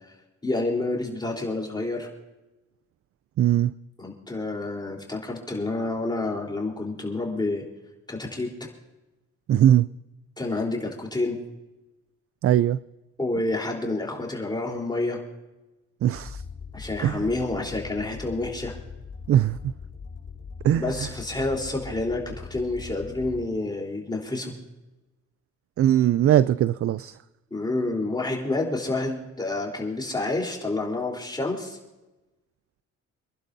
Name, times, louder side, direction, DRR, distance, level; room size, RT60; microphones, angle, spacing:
voice 1, 0.4-2.1 4.0-7.6 8.1-8.5 10.4-11.4 13.2-15.2 16.7-18.7 20.7-24.5 27.5-31.8, left 2 dB, 15° left, -1 dB, 3.9 m, -28 dB
voice 2, 3.4-3.7 9.5-9.9 12.4-12.8 16.0-16.4 17.0-17.3 19.3-19.7 20.6-20.9 25.8-27.2, right 11 dB, 50° right, 17 dB, 0.4 m, -20 dB
sound 1, 16.1-23.5, left 5 dB, 40° left, 5.5 m, -41 dB
28.0 x 11.5 x 2.7 m, 1.1 s
cardioid pair, 90°, 30 cm